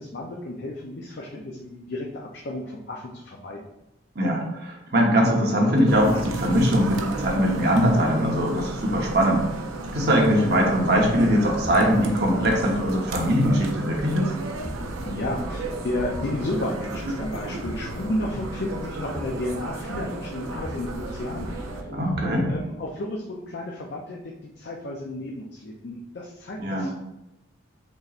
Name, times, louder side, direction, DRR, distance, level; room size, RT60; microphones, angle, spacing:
voice 1, 0.0-3.6 15.0-21.8 22.5-26.9, left 1 dB, 55° left, -1 dB, 0.5 m, -32 dB
voice 2, 4.1-9.4 9.9-14.3 21.9-22.5 26.6-26.9, equal, 50° right, -1 dB, 1.0 m, -21 dB
sound 1, 5.9-21.8, right 2 dB, 90° right, 0.5 m, -34 dB
sound 2, 10.9-23.1, right 1 dB, 20° right, 1.2 m, -39 dB
5.3 x 3.0 x 2.5 m, 0.89 s
head